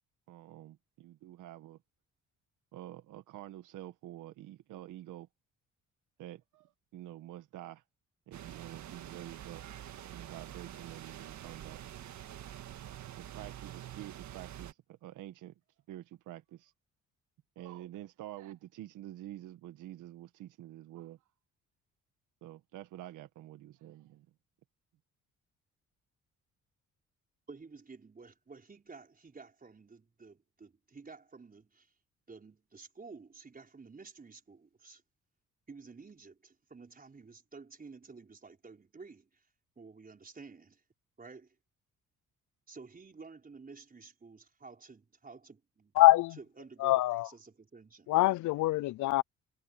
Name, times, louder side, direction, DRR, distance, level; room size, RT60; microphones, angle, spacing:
voice 1, 0.3-1.8 2.7-5.3 6.2-7.8 8.3-9.6 10.0-11.8 13.2-15.5 15.9-16.7 17.5-21.2 22.4-24.3, right 13 dB, 90° right, 1.7 m, -48 dB
sound 1, 8.3-14.7, right 11 dB, 70° right, 1.7 m, -46 dB
voice 2, 27.5-31.9 32.3-35.0 35.7-39.5 39.8-40.8 41.2-41.6 42.7-45.9 46.4-48.1, right 4 dB, 30° right, 4.8 m, -52 dB
voice 3, 46.0-46.4 46.8-47.3 48.1-49.2, left 18 dB, 75° left, 0.5 m, -24 dB
cardioid pair, 90°, 30 cm